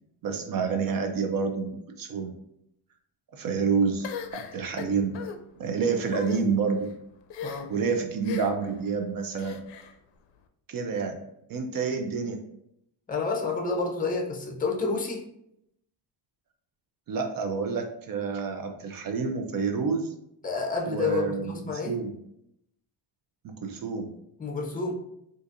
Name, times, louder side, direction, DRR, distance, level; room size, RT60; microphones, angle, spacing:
voice 1, 0.2-2.3 3.3-5.2 5.6-6.9 7.7-9.6 10.7-11.2 11.5-12.4 17.1-20.1 20.9-22.1 23.4-24.1, right 5 dB, 50° right, 5 dB, 0.5 m, -28 dB
sound 1, 4.0-5.4 6.0-6.4 7.3-7.8 8.2-8.7 9.3-9.9, left 7 dB, 70° left, 0.5 m, -37 dB
voice 2, 7.4-7.7 13.1-15.2 20.4-22.0 24.4-24.9, left 4 dB, 20° left, 1 dB, 0.6 m, -29 dB
3.8 x 2.6 x 2.5 m, 0.78 s
cardioid pair, 110°, 45 cm